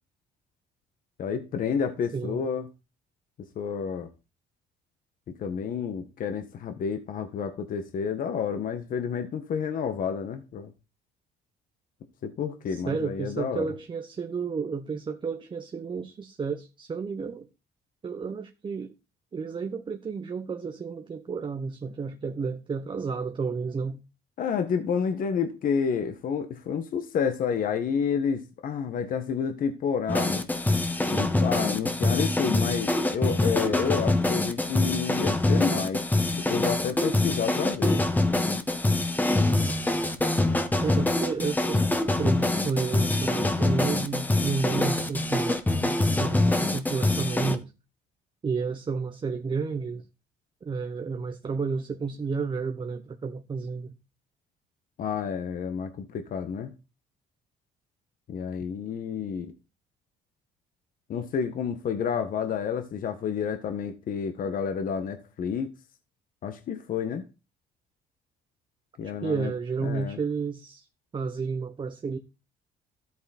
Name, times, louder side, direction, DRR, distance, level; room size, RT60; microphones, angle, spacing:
voice 1, 1.2-2.7 3.5-4.1 5.3-10.7 12.2-13.7 24.4-30.5 31.1-36.0 36.3-38.0 55.0-56.7 58.3-59.5 61.1-65.7 66.4-67.2 69.0-69.5 69.8-70.2, left 7 dB, 55° left, 1.5 m, -30 dB
voice 2, 12.7-17.5 18.0-18.9 19.3-24.0 40.8-41.8 42.2-47.6 48.4-50.0 50.6-53.9 69.2-70.9 71.1-72.2, right 5 dB, 30° right, 1.1 m, -31 dB
sound 1, 30.1-47.6, left 2 dB, 10° left, 1.5 m, -25 dB
13.0 x 8.4 x 4.3 m
cardioid pair, 110°, 17 cm